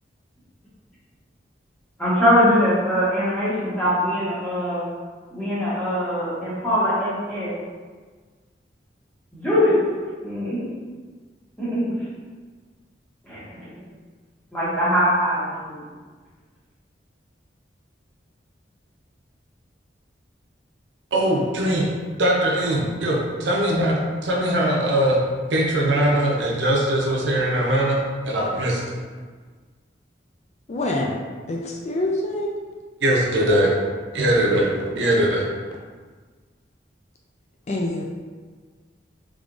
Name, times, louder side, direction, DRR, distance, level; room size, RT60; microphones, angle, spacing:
voice 1, 2.0-4.8 5.3-7.5 9.3-9.8 10.2-10.7 11.6-11.8 13.2-13.7 14.5-15.8, equal, 10° left, -11 dB, 1.3 m, -22 dB
voice 2, 21.1-21.9 22.2-25.2 25.5-28.0 28.2-28.8 33.0-33.7 34.1-35.5, right 1 dB, 85° right, -2 dB, 0.7 m, -21 dB
voice 3, 30.7-31.2 31.5-32.5 37.7-38.0, left 1 dB, 40° left, -1 dB, 0.4 m, -25 dB
3.6 x 3.4 x 2.5 m, 1.5 s
head